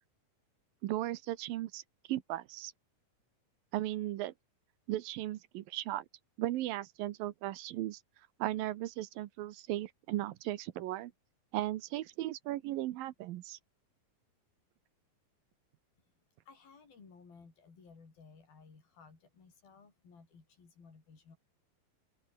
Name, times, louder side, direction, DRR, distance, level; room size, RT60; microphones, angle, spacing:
voice 1, 0.8-1.8 2.1-2.7 3.7-4.3 4.9-6.1 6.4-8.0 8.4-11.1 11.5-13.6, right 15 dB, 80° right, 2.7 m, -36 dB
voice 2, 16.4-21.4, left 5 dB, 80° left, 7.9 m, -58 dB
open air
omnidirectional pair, 4.2 m